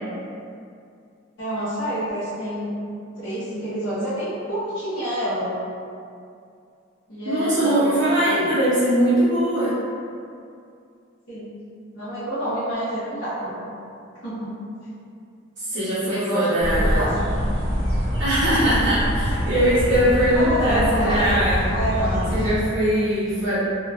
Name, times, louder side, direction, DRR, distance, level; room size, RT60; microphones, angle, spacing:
voice 1, 1.4-2.7 3.2-5.5 7.1-8.5 11.3-11.5 11.9-13.6 14.2-14.5 16.0-17.4 20.3-21.3 21.7-22.3, equal, 75° left, -13 dB, 0.8 m, -27 dB
voice 2, 7.2-9.8 15.6-17.1 18.2-21.7 22.3-23.6, right 1 dB, 70° right, -14 dB, 0.6 m, -21 dB
sound 1, 16.6-22.5, equal, 30° left, 0.7 m, -25 dB
2.8 x 2.1 x 2.3 m, 2.4 s
head